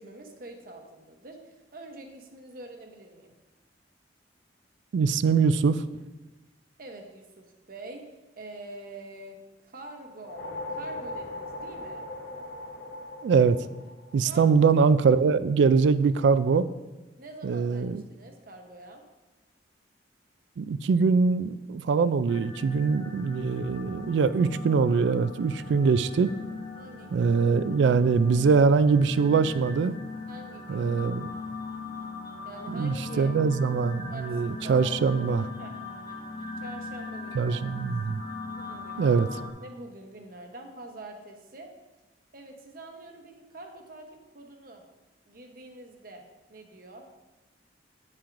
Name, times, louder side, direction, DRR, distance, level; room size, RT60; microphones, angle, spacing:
voice 1, 0.0-3.3 6.8-8.1 8.4-10.4 10.7-12.1 14.3-14.5 17.2-19.0 26.8-28.0 28.4-28.5 30.3-30.9 32.4-33.3 34.0-35.3 35.6-35.7 36.6-37.6 38.6-41.7 42.3-44.8 45.2-46.2 46.5-47.1, right 2 dB, 50° right, 3 dB, 0.9 m, -45 dB
voice 2, 4.9-6.0 13.2-13.6 14.1-16.7 17.4-18.0 20.6-26.3 27.1-30.0 30.7-31.3 32.7-35.5 37.3-38.2 39.0-39.3, right 5 dB, 70° right, 15 dB, 0.3 m, -23 dB
sound 1, 10.1-14.6, left 1 dB, 70° left, 0.8 m, -39 dB
sound 2, 22.3-39.5, left 3 dB, 25° left, 0.9 m, -40 dB
8.7 x 7.5 x 2.6 m, 1.1 s
head